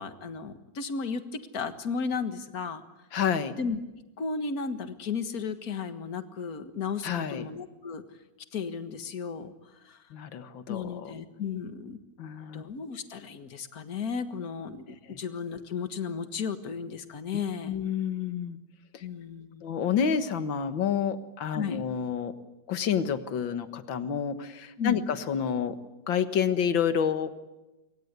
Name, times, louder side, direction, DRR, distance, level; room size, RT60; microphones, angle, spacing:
voice 1, 0.0-2.8 3.6-3.8 4.2-8.0 8.5-9.5 9.8-10.0 10.7-12.0 12.5-17.8 19.0-19.6 21.5-21.8 24.8-25.0, left 5 dB, 50° left, 9 dB, 2.0 m, -34 dB
voice 2, 3.1-3.5 7.0-7.5 10.1-11.1 12.2-12.6 15.1-15.2 17.7-18.6 18.9-19.0 19.6-22.3 22.7-25.8 26.1-27.3, left 7 dB, 75° left, 10 dB, 2.2 m, -29 dB
27.0 x 24.5 x 8.2 m, 1.0 s
omnidirectional pair, 2.1 m